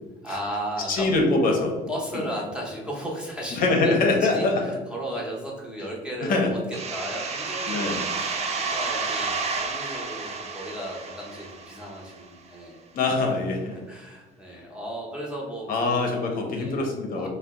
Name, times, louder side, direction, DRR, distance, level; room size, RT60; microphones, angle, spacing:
voice 1, 0.2-1.1 1.9-4.0 4.3-12.8 13.9-15.7 16.6-16.8 17.1-17.3, equal, 5° right, -3 dB, 0.8 m, -35 dB
voice 2, 0.9-1.8 3.5-4.6 6.2-6.5 7.7-8.0 12.9-13.8 15.7-17.3, left 3 dB, 55° left, 1 dB, 0.6 m, -23 dB
sound 1, 6.7-12.2, right 4 dB, 40° right, 0.4 m, -31 dB
2.7 x 2.0 x 3.5 m, 1.3 s
cardioid pair, 110°, 17 cm